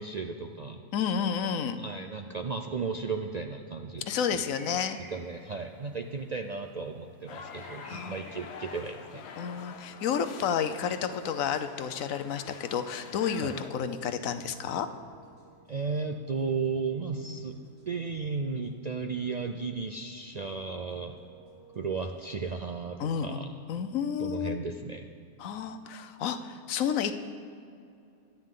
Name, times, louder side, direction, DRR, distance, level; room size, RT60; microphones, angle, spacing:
voice 1, 0.0-0.8 1.8-4.1 4.3-4.4 5.1-9.2 13.4-13.6 15.7-17.6 17.9-21.2 21.8-23.5 24.2-25.1, right 4 dB, 55° right, 5 dB, 0.4 m, -34 dB
voice 2, 0.9-1.8 4.1-5.0 7.9-8.2 9.4-14.9 23.0-23.4 23.7-24.6 25.4-27.1, left 7 dB, 90° left, 10 dB, 1.1 m, -31 dB
sound 1, 4.2-9.9, equal, ahead, 2.2 m, -53 dB
sound 2, 7.3-13.7, left 6 dB, 60° left, 0.9 m, -46 dB
sound 3, 13.5-22.6, right 3 dB, 90° right, 3.4 m, -57 dB
23.0 x 9.4 x 3.8 m, 2.5 s
omnidirectional pair, 1.4 m